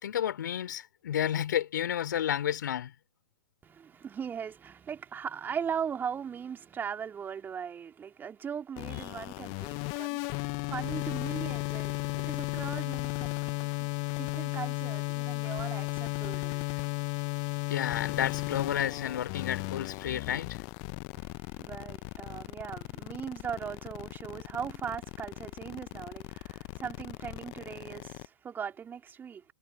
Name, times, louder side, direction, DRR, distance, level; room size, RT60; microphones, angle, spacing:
voice 1, 0.0-2.9 17.7-20.6, left 10 dB, 60° left, 4.3 m, -31 dB
voice 2, 3.6-16.7 21.2-29.4, right 7 dB, 15° right, 3.5 m, -39 dB
sound 1, 8.8-28.3, left 38 dB, 35° left, 0.8 m, -35 dB
figure-of-eight pair, 105°, 11 cm